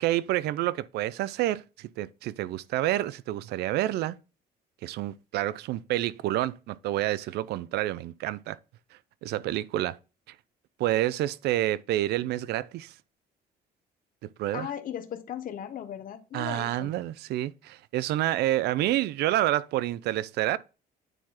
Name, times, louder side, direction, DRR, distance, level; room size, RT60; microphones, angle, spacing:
voice 1, 0.0-4.2 4.8-8.6 9.2-10.0 10.8-12.9 14.4-14.7 16.3-20.6, right 14 dB, 75° right, 0.5 m, -28 dB
voice 2, 14.5-16.9, left 9 dB, 55° left, 1.2 m, -37 dB
9.1 x 3.9 x 4.3 m
cardioid pair, 110°, 17 cm